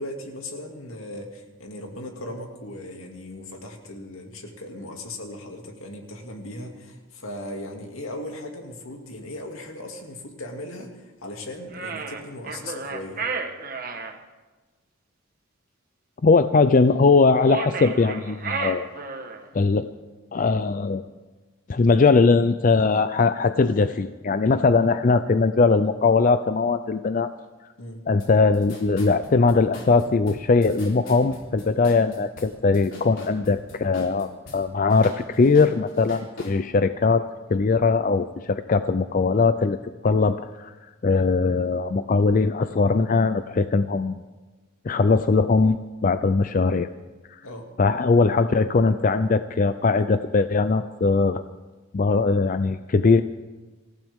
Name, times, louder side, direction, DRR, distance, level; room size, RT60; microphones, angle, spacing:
voice 1, 0.0-13.2 27.8-28.0 47.4-47.7, left 1 dB, 80° left, 2 dB, 2.4 m, -37 dB
sound 1, 11.7-14.1 17.3-19.5, right 4 dB, 45° right, 1.3 m, -32 dB
voice 2, 16.2-18.9 19.5-19.9 20.3-21.0 21.7-27.3 28.1-39.8 40.0-40.7 41.0-44.2 44.9-46.9 47.3-47.4 47.8-51.4 51.9-53.2, left 4 dB, 40° left, 11 dB, 0.4 m, -20 dB
sound 2, 28.2-28.3 28.5-34.6 34.9-36.6, left 1 dB, 65° left, 3.9 m, -42 dB
26.0 x 15.0 x 3.6 m, 1.2 s
head